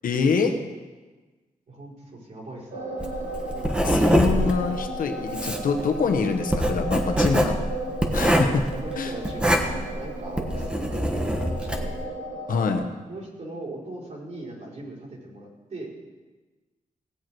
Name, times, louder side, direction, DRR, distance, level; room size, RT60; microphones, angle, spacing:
voice 1, 0.0-0.5 3.8-7.6 8.1-8.5 9.0-9.1 12.5-12.9, left 5 dB, 90° left, 4 dB, 1.2 m, -25 dB
voice 2, 1.7-2.8 8.4-12.0 13.1-16.0, right 2 dB, 60° right, -6 dB, 4.4 m, -40 dB
sound 1, 2.7-12.7, right 1 dB, 75° right, 2.0 m, -35 dB
Writing, 3.0-12.0, equal, 5° right, 1.2 m, -24 dB
17.5 x 7.9 x 4.6 m, 1.3 s
wide cardioid pair, 110°, 14 cm